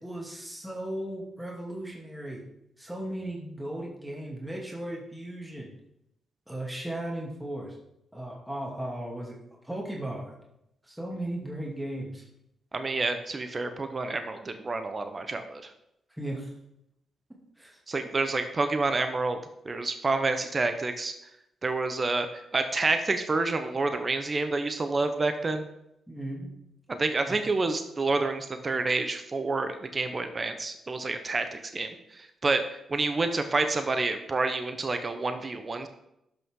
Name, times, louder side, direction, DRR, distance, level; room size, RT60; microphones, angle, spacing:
voice 1, 0.0-2.4 2.8-5.7 6.5-7.8 8.1-9.4 9.6-10.4 10.8-12.2 16.2-16.5 17.6-17.8 26.1-26.5 27.3-27.4, right 1 dB, 10° right, -3 dB, 2.6 m, -36 dB
voice 2, 12.7-15.7 17.9-19.4 19.6-21.1 21.6-25.7 26.9-35.9, right 3 dB, 40° right, 8 dB, 0.9 m, -28 dB
12.0 x 5.8 x 3.8 m, 0.82 s
supercardioid pair, 50°, 0 cm